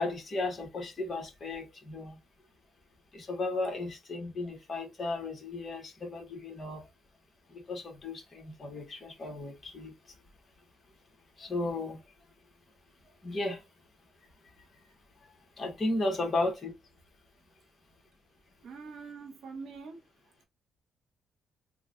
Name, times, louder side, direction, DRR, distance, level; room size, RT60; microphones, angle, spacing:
voice 1, 0.0-2.2 3.1-6.9 7.5-9.9 11.4-12.0 13.2-13.6 15.6-16.8, left 2 dB, 40° left, 1.3 m, -34 dB
voice 2, 18.6-20.1, right 4 dB, 70° right, 0.9 m, -44 dB
3.1 x 2.3 x 3.7 m
cardioid pair, 90°, 0 cm